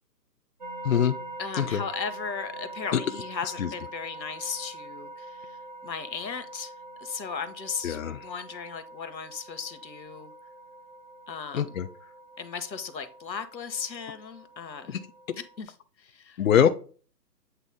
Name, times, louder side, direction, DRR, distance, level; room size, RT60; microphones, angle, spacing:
sound 1, 0.6-15.6, right 1 dB, 30° right, 0.5 m, -44 dB
voice 1, 0.8-1.2 1.6-1.8 2.9-3.0 3.6-3.7 7.8-8.2 11.5-11.9 16.4-16.7, left 8 dB, 55° left, 0.6 m, -22 dB
voice 2, 1.4-6.7 7.0-10.3 11.3-11.6 12.4-15.0 15.4-16.4, left 6 dB, 90° left, 1.2 m, -36 dB
8.0 x 3.5 x 3.9 m
hypercardioid pair, 150°, 50 cm